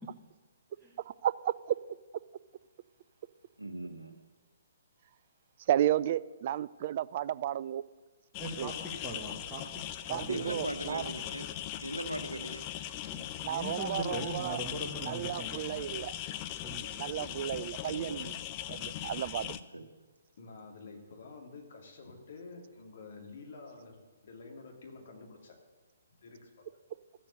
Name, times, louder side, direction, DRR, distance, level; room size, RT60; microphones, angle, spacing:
voice 1, 1.2-1.8 5.7-7.8 8.6-8.7 10.1-11.0 13.4-14.6 15.0-16.1 17.0-18.3 18.7-19.5, right 11 dB, 40° right, 0.3 m, -32 dB
voice 2, 3.6-4.1 10.3-11.4 11.8-12.6 17.8-18.3 19.5-19.9, right 1 dB, 80° right, 1.2 m, -39 dB
sound 1, 8.3-19.6, left 12 dB, 25° left, 0.5 m, -40 dB
voice 3, 8.4-9.6 10.1-10.5 13.1-15.9 16.6-17.6 18.8-18.9, equal, ahead, 1.4 m, -41 dB
voice 4, 10.4-11.2 12.7-13.0 20.4-24.0 24.2-25.6 26.2-26.6, left 4 dB, 50° left, 2.3 m, -49 dB
13.5 x 7.3 x 6.7 m
figure-of-eight pair, 130°, 0 cm